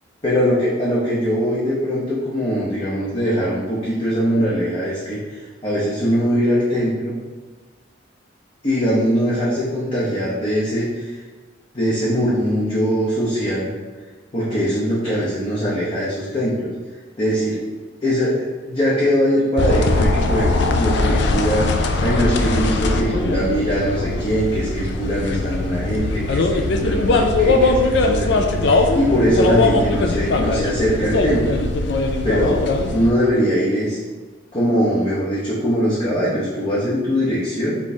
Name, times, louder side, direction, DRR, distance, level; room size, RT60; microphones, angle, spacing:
voice 1, 0.2-7.1 8.6-11.1 11.7-13.7 14.3-16.7 17.2-17.6 18.0-31.6 32.2-32.6 32.9-34.0 34.5-37.8, equal, 30° left, -8 dB, 0.7 m, -21 dB
sound 1, 19.6-33.1, left 2 dB, 60° left, 0.4 m, -20 dB
3.4 x 3.1 x 4.1 m, 1.4 s
head